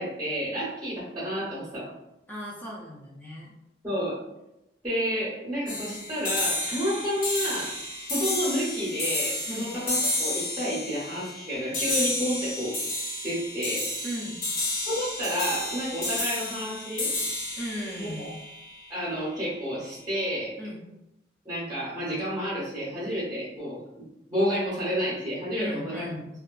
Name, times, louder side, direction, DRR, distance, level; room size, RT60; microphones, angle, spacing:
voice 1, 0.0-1.9 3.8-4.2 4.8-7.7 8.1-12.7 13.2-13.9 14.9-17.1 18.0-18.3 18.9-20.6 21.4-23.8 24.3-26.1, equal, 20° right, -8 dB, 0.7 m, -30 dB
voice 2, 2.3-3.5 9.5-9.7 14.0-14.4 17.6-18.4 20.6-20.8 25.6-26.3, equal, 10° left, -5 dB, 0.5 m, -36 dB
sound 1, 5.7-19.1, left 2 dB, 50° left, 0.8 m, -31 dB
2.7 x 2.2 x 2.3 m, 0.90 s
head